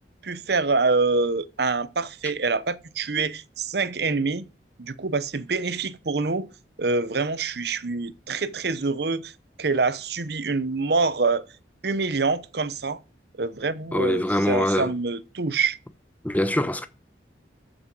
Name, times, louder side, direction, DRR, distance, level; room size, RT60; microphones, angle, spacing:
voice 1, 0.2-4.5 4.8-6.5 6.8-9.3 9.6-11.4 11.8-13.0 13.4-15.8, right 4 dB, 65° right, 0.8 m, -25 dB
voice 2, 13.9-14.9 16.2-16.9, left 1 dB, 10° left, 0.9 m, -23 dB
13.5 x 6.3 x 6.1 m
head